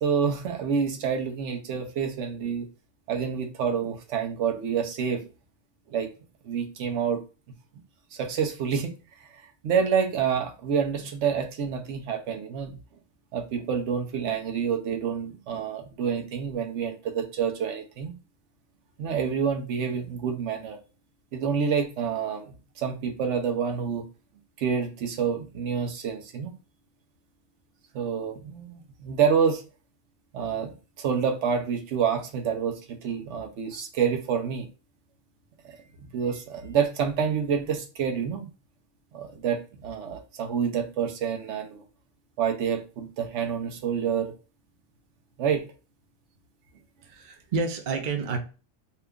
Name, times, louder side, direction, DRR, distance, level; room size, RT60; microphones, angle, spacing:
voice 1, 0.0-2.7 3.1-5.3 5.9-6.1 6.4-7.2 8.1-9.0 9.2-12.8 13.3-18.2 19.0-20.8 21.3-24.1 24.6-26.5 27.9-29.6 30.3-34.7 35.7-35.8 36.1-38.5 39.1-41.8 42.4-44.3 45.4-45.7, right 7 dB, 80° right, 1.0 m, -28 dB
voice 2, 47.0-48.4, right 4 dB, 50° right, 0.7 m, -29 dB
2.8 x 2.4 x 3.4 m
omnidirectional pair, 1.2 m